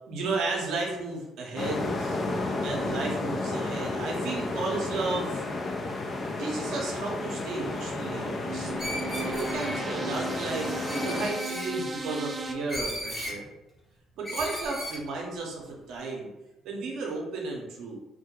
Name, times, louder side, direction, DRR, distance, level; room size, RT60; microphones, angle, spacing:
voice 1, 0.1-2.2 2.6-5.4 6.4-8.7 9.1-13.5 14.2-16.3 16.6-18.0, right 3 dB, 70° right, -1 dB, 0.7 m, -33 dB
sound 1, 1.6-11.3, left 2 dB, 40° left, 0.4 m, -32 dB
sound 2, 7.7-12.5, right 2 dB, 30° right, 0.4 m, -36 dB
Screech, 8.8-9.8 10.9-11.7 12.7-13.4 14.2-15.0, equal, 10° left, 0.9 m, -36 dB
2.2 x 2.1 x 2.9 m, 0.94 s
supercardioid pair, 60°, 0 cm